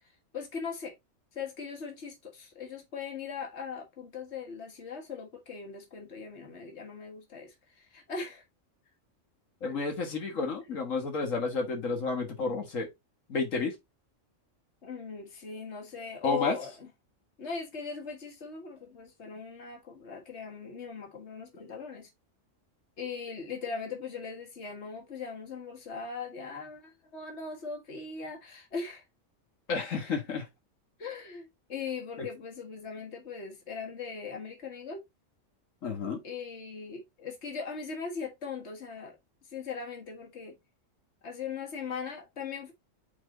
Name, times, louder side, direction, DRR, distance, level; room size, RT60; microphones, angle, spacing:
voice 1, 0.3-0.9 1.3-8.4 9.6-9.8 14.8-16.9 17.4-22.1 23.0-29.0 30.0-30.4 31.0-35.0 36.2-39.2 39.5-40.6 41.2-42.7, left 5 dB, 60° left, 1.9 m, -39 dB
voice 2, 9.6-12.9 13.3-13.8 16.2-16.6 29.7-30.5 32.2-32.3 35.8-36.2, left 4 dB, 85° left, 1.9 m, -31 dB
5.9 x 4.2 x 3.9 m
omnidirectional pair, 1.3 m